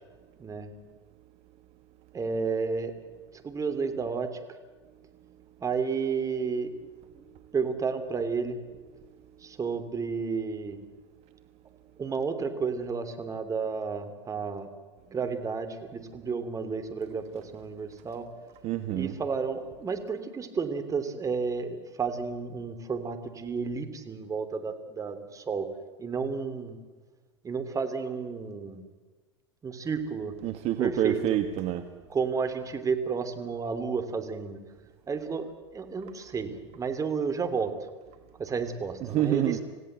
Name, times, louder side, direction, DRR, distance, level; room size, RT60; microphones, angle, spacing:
voice 1, 0.4-0.7 2.1-2.9 3.3-4.4 5.6-6.9 7.2-7.3 7.5-8.6 9.4-10.8 12.0-14.7 15.1-18.3 18.9-25.7 26.0-26.8 27.4-28.8 29.6-30.3 30.8-31.4 32.1-34.6 35.1-37.7 38.4-39.6, right 5 dB, 20° right, 8 dB, 3.1 m, -31 dB
voice 2, 18.6-19.1 30.4-31.9 39.1-39.6, right 12 dB, 45° right, 8 dB, 1.5 m, -27 dB
27.5 x 16.5 x 8.1 m, 1.3 s
hypercardioid pair, 90°, 15 cm